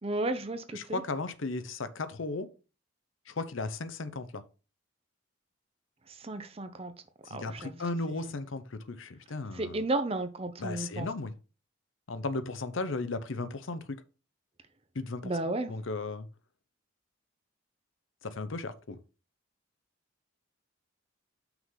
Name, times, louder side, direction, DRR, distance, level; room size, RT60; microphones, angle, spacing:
voice 1, 0.0-1.0 6.1-6.9 7.3-8.4 9.5-11.1 15.2-15.7, right 2 dB, 30° right, 0.6 m, -34 dB
voice 2, 0.7-2.5 3.3-4.4 7.3-9.8 10.6-11.3 12.1-13.8 14.9-15.3 15.7-16.3 18.2-19.0, left 3 dB, 75° left, 0.7 m, -35 dB
5.9 x 3.8 x 5.6 m
head